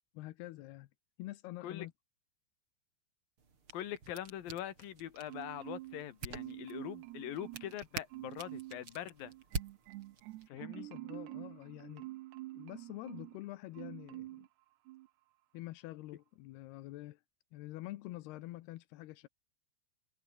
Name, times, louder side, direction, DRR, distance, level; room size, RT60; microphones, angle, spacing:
voice 1, 0.1-0.9 1.2-1.9 10.5-12.1 12.6-14.5 15.5-17.2 17.5-19.3, left 17 dB, 80° left, 2.4 m, -47 dB
sound 1, 3.4-10.5, right 5 dB, 30° right, 3.5 m, -47 dB
voice 2, 3.7-9.3 10.5-10.9, left 11 dB, 55° left, 3.1 m, -43 dB
Marimba xylophone, 5.3-6.1 6.3-7.8 8.1-8.8 9.2-13.4 13.7-14.5 14.9-15.1, right 18 dB, 85° right, 2.4 m, -47 dB
omnidirectional pair, 5.7 m